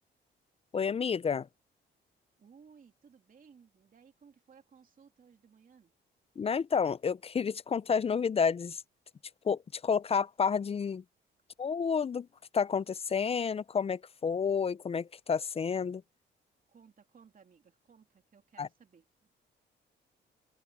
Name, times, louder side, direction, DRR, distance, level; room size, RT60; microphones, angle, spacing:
voice 1, 0.7-1.5 6.4-8.8 9.4-11.0 11.6-12.3 12.5-16.0 18.6-18.7, left 6 dB, 30° left, 0.5 m, -30 dB
voice 2, 2.4-5.9 16.7-19.3, right 6 dB, 45° right, 2.9 m, -60 dB
open air
cardioid pair, 90°, 20 cm